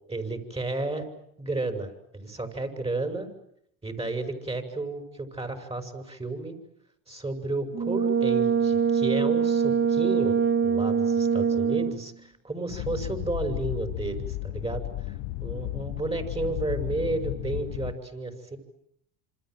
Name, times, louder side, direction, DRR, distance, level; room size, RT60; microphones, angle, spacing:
voice 1, 0.1-1.1 1.4-3.3 3.8-6.5 7.1-10.3 10.6-18.6, right 2 dB, 15° right, 7 dB, 6.1 m, -32 dB
Brass instrument, 7.7-12.1, right 6 dB, 30° right, 2.1 m, -24 dB
sound 1, 12.7-17.9, left 17 dB, 75° left, 1.3 m, -34 dB
28.0 x 26.0 x 7.8 m, 0.73 s
supercardioid pair, 90°, 41 cm